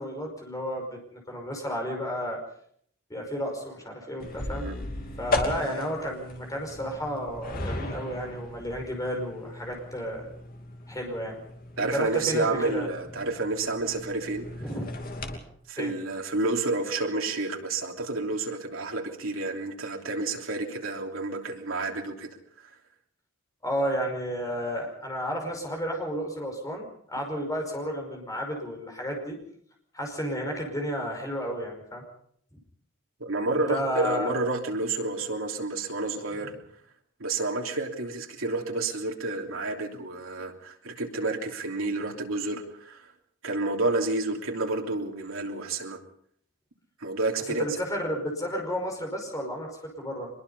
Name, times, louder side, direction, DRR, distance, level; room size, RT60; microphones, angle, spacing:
voice 1, 0.0-2.4 3.1-4.7 5.2-10.3 10.9-11.4 11.8-12.9 14.6-14.8 15.8-15.9 23.6-29.4 29.9-32.0 33.5-34.3 47.5-50.3, equal, 15° left, 2 dB, 5.2 m, -32 dB
sound 1, 4.2-15.4, left 2 dB, 45° left, 2.8 m, -36 dB
voice 2, 11.8-14.5 15.7-22.3 33.2-36.5 37.2-43.1 43.4-46.0 47.0-47.7, right 2 dB, 75° right, 1 dB, 3.2 m, -30 dB
24.0 x 21.5 x 5.5 m, 0.67 s
head